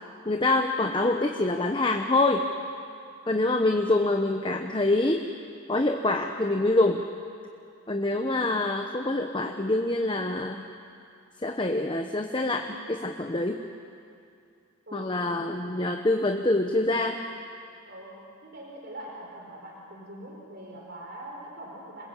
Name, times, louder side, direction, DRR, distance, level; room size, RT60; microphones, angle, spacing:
voice 1, 0.2-2.5 3.3-5.3 5.7-7.0 7.9-10.6 11.4-13.6 14.9-17.2, left 2 dB, 20° left, 4 dB, 0.9 m, -25 dB
voice 2, 14.9-15.6 17.9-22.1, right 1 dB, 45° right, -2 dB, 4.5 m, -43 dB
27.5 x 21.0 x 8.3 m, 2.4 s
head